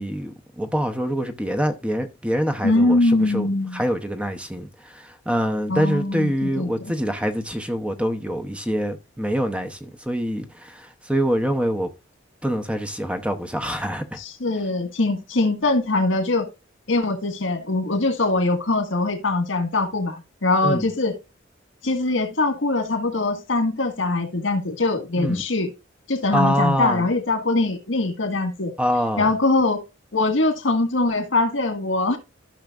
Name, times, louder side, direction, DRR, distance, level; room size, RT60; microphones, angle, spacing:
voice 1, 0.0-3.5 3.7-4.7 5.3-10.5 11.1-11.9 12.4-14.1 20.6-20.8 25.2-25.4 26.3-27.1 28.8-29.3, equal, 5° right, 0.8 m, -25 dB
voice 2, 2.6-3.8 5.7-6.9 14.2-16.5 16.9-21.1 21.8-25.7 26.1-28.7 29.2-29.8 30.1-32.2, left 2 dB, 80° left, 1.7 m, -22 dB
14.0 x 5.8 x 2.4 m
head